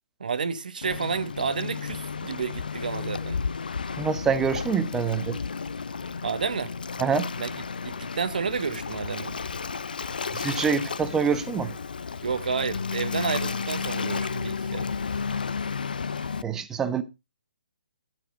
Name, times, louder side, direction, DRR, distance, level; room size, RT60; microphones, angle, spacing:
voice 1, 0.2-3.4 6.2-6.7 7.4-9.3 12.2-14.9, right 5 dB, 70° right, 1.0 m, -30 dB
Waves surf, 0.8-16.4, left 5 dB, 75° left, 0.6 m, -32 dB
voice 2, 4.0-5.4 7.0-7.3 10.3-11.8 16.4-17.0, right 6 dB, 10° right, 0.9 m, -26 dB
11.5 x 6.1 x 5.1 m
hypercardioid pair, 145°, 5 cm